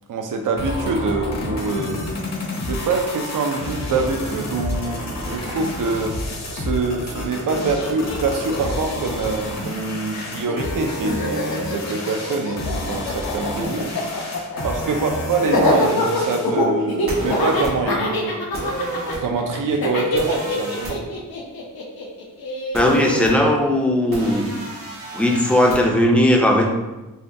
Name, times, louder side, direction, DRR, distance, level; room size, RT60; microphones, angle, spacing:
voice 1, 0.1-2.1 2.6-6.1 6.5-13.9 14.6-18.5 19.2-21.0, right 3 dB, 65° right, 3 dB, 0.5 m, -25 dB
sound 1, 0.6-16.6, left 1 dB, 50° left, 0.8 m, -29 dB
Laughter, 7.2-7.3 7.5-9.8 10.1-23.1, left 2 dB, 90° left, 0.8 m, -25 dB
sound 2, 17.1-17.7 18.5-19.2 20.2-20.9 22.7-23.3 24.1-25.8, right 1 dB, 90° right, 1.5 m, -30 dB
voice 2, 22.7-24.6 25.1-26.7, left 1 dB, 5° left, 1 dB, 0.4 m, -17 dB
5.4 x 2.2 x 2.6 m, 1.1 s
wide cardioid pair, 125°, 35 cm